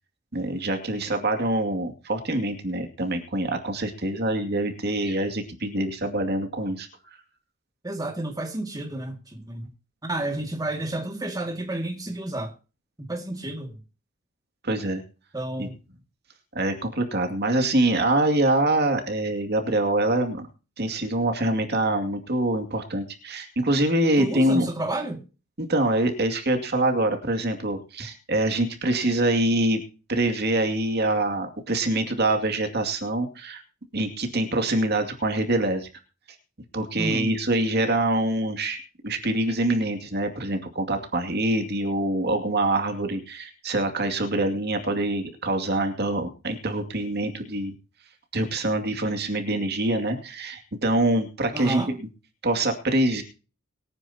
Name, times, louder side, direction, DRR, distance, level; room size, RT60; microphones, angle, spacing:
voice 1, 0.3-6.9 14.6-15.0 15.6-15.7 16.5-20.5 20.8-24.7 25.6-29.8 30.1-33.6 33.9-35.9 36.7-38.8 39.0-47.7 48.3-52.1 52.4-53.2, right 1 dB, 55° right, 2.4 m, -25 dB
voice 2, 7.8-9.7 10.0-12.5 13.0-13.8 15.3-15.8 24.2-25.2 37.0-37.3 51.5-51.9, right 1 dB, 20° right, 2.1 m, -30 dB
23.5 x 9.7 x 2.9 m
head